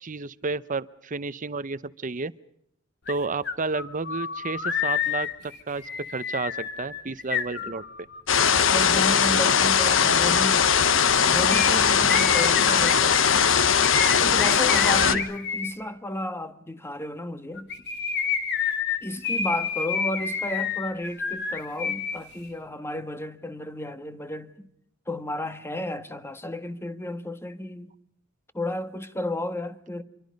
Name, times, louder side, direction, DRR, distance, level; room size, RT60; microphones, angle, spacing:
voice 1, 0.0-2.3 3.1-7.8 14.9-15.2, right 3 dB, 40° right, 0.8 m, -31 dB
sound 1, 3.1-3.2 3.4-8.2 11.5-15.7 17.6-22.2 22.4-22.5, left 6 dB, 60° left, 3.3 m, -29 dB
sound 2, 8.3-15.2, left 7 dB, 75° left, 1.1 m, -20 dB
voice 2, 8.5-10.7 11.3-13.5 14.2-17.7 19.0-24.7 25.1-27.9 28.5-30.0, left 1 dB, 15° left, 1.4 m, -33 dB
26.5 x 24.0 x 5.3 m
head